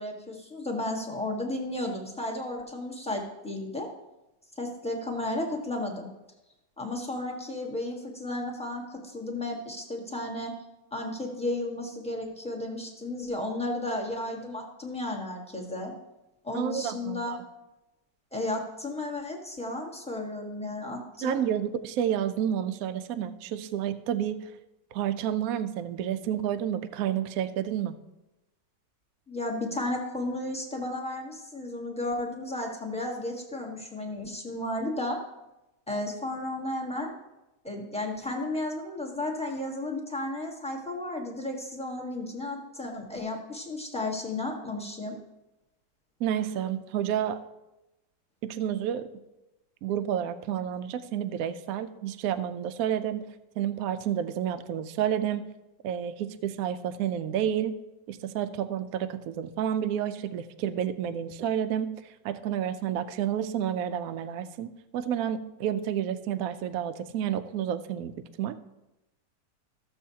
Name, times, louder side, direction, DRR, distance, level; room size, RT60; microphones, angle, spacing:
voice 1, 0.0-3.9 4.6-6.1 6.8-10.5 10.9-15.9 16.4-17.4 18.3-21.4 29.3-35.2 35.9-37.1 37.6-45.2, left 1 dB, 5° left, -1 dB, 1.1 m, -33 dB
voice 2, 16.5-17.4 21.2-24.4 24.9-27.9 46.2-47.4 48.4-49.1 49.8-53.2 53.6-55.4 55.8-57.8 58.1-61.9 62.2-68.5, right 10 dB, 70° right, 11 dB, 0.9 m, -30 dB
14.5 x 6.9 x 2.8 m, 0.98 s
omnidirectional pair, 1.9 m